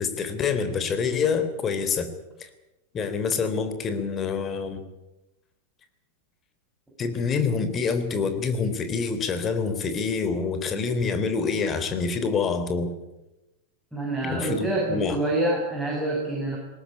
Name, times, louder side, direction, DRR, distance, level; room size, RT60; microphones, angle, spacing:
voice 1, 0.0-2.1 2.4-2.5 2.9-4.8 7.0-12.9 14.2-15.2, left 5 dB, 25° left, 9 dB, 3.4 m, -26 dB
voice 2, 13.9-16.6, right 2 dB, 5° right, -3 dB, 7.5 m, -26 dB
20.5 x 19.0 x 9.9 m, 1.0 s
figure-of-eight pair, 90°, 0 cm